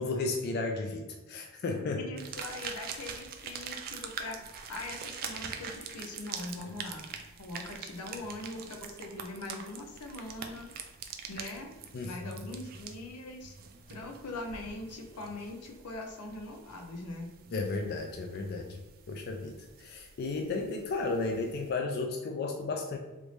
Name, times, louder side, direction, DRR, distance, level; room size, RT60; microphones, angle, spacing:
voice 1, 0.0-2.0 11.9-12.5 17.5-18.8 19.1-23.0, left 3 dB, 45° left, 3 dB, 0.3 m, -34 dB
voice 2, 2.0-7.1 7.4-10.7 11.3-11.7 12.0-13.5 13.9-17.3, left 2 dB, 90° left, 2 dB, 0.6 m, -42 dB
sound 1, 2.2-21.7, right 6 dB, 40° right, 0.3 m, -45 dB
3.2 x 2.6 x 3.2 m, 1.1 s
head